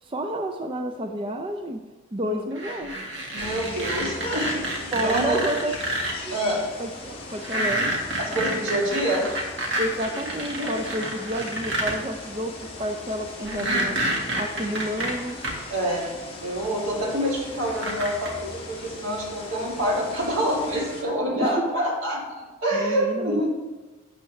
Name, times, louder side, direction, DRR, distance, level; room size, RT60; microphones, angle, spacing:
voice 1, 0.0-1.8 2.1-3.0 4.9-5.7 6.3-6.4 6.8-7.8 9.8-15.4 21.3-21.6 22.7-23.4, right 1 dB, 25° right, 4 dB, 0.5 m, -30 dB
sound 1, 2.6-6.1 7.4-11.9 13.5-15.5 16.6-16.7 17.7-18.3, right 1 dB, 60° right, 1.8 m, -28 dB
voice 2, 3.3-5.4 6.2-6.6 8.2-9.3 10.5-10.8 13.4-13.9 15.7-16.1 16.4-23.5, equal, 85° right, -3 dB, 2.8 m, -27 dB
sound 2, 3.4-21.0, left 2 dB, 25° left, 1.9 m, -39 dB
12.0 x 8.2 x 3.2 m, 1.2 s
head